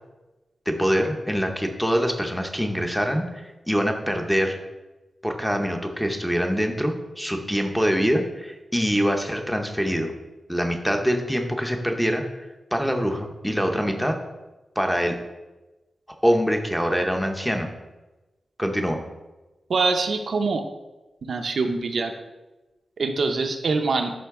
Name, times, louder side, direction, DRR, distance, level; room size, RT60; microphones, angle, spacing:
voice 1, 0.7-4.6 5.2-10.1 10.5-14.2 14.8-15.2 16.2-17.7 18.6-19.0, equal, ahead, 3 dB, 0.6 m, -24 dB
voice 2, 19.7-20.6 21.3-22.1 23.0-24.1, right 4 dB, 60° right, 5 dB, 0.6 m, -24 dB
11.0 x 3.9 x 3.5 m, 1.1 s
wide cardioid pair, 165°, 0 cm